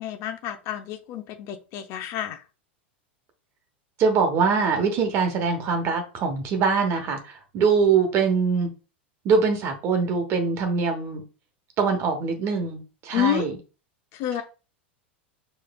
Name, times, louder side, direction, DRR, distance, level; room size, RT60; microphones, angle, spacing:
voice 1, 0.0-2.4 13.1-13.5 14.1-14.4, left 11 dB, 50° left, 0.6 m, -29 dB
voice 2, 4.0-8.7 9.2-11.2 11.8-13.5, right 5 dB, 45° right, 1.1 m, -23 dB
4.7 x 3.1 x 2.3 m
hypercardioid pair, 100°, 6 cm